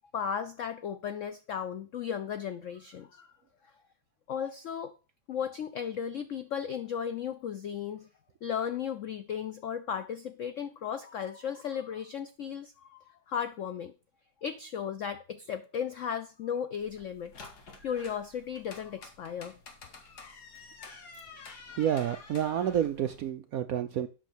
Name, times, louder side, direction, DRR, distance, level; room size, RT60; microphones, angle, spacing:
voice 1, 0.1-3.3 3.6-3.7 4.3-4.9 5.3-8.1 8.4-13.9 14.4-17.3 17.8-19.6, left 8 dB, 85° left, 10 dB, 0.6 m, -35 dB
sound 1, 16.8-23.3, left 4 dB, 60° left, 2.1 m, -50 dB
voice 2, 21.8-24.1, right 10 dB, 75° right, 9 dB, 0.8 m, -29 dB
8.2 x 6.0 x 6.0 m, 0.34 s
omnidirectional pair, 2.1 m